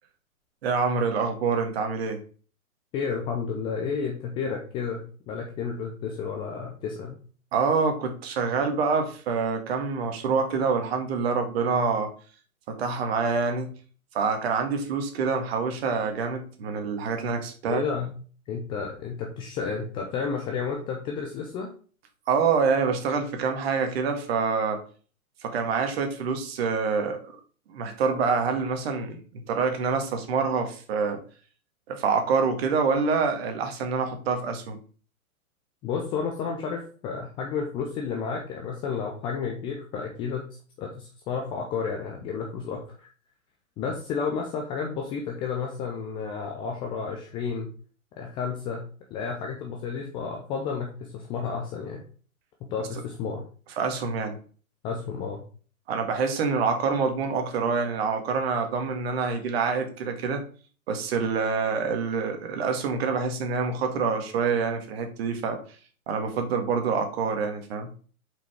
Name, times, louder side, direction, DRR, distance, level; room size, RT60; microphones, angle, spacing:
voice 1, 0.6-2.2 7.5-12.1 12.7-13.8 14.1-17.8 22.3-24.8 25.4-27.3 27.7-31.2 31.9-34.8 53.8-54.4 55.9-60.4 60.9-65.6 66.1-67.9, right 5 dB, 45° right, 5 dB, 1.9 m, -26 dB
voice 2, 2.9-7.2 17.7-18.1 18.5-21.7 35.8-40.5 40.8-43.1 43.8-47.7 48.2-48.9 49.1-52.0 52.7-53.4 54.8-55.4, left 5 dB, 10° left, 1 dB, 0.5 m, -31 dB
7.3 x 5.3 x 3.5 m, 0.40 s
figure-of-eight pair, 125°, 43 cm